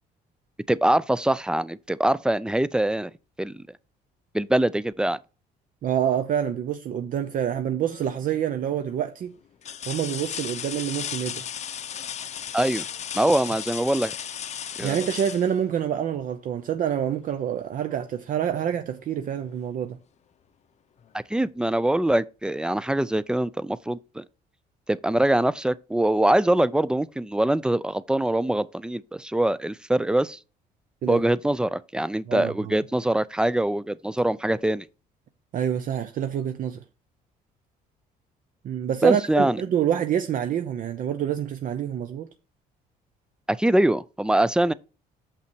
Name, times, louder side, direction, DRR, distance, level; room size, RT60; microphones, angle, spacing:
voice 1, 0.7-3.1 3.4-3.6 4.3-5.2 12.5-12.8 13.1-14.1 14.8-15.0 21.3-24.2 24.9-30.4 31.1-34.8 39.0-39.6 43.5-44.7, right 1 dB, 5° right, 0.3 m, -23 dB
voice 2, 5.8-9.3 9.9-11.4 14.8-20.0 31.0-31.2 32.3-32.7 35.5-36.8 38.6-42.3, right 9 dB, 55° right, 0.7 m, -27 dB
sound 1, 7.9-8.3 8.9-9.0 9.6-16.3 18.1-18.2 18.7-19.7 21.0-21.1, left 9 dB, 40° left, 0.6 m, -35 dB
7.0 x 5.6 x 4.5 m
cardioid pair, 110°, 17 cm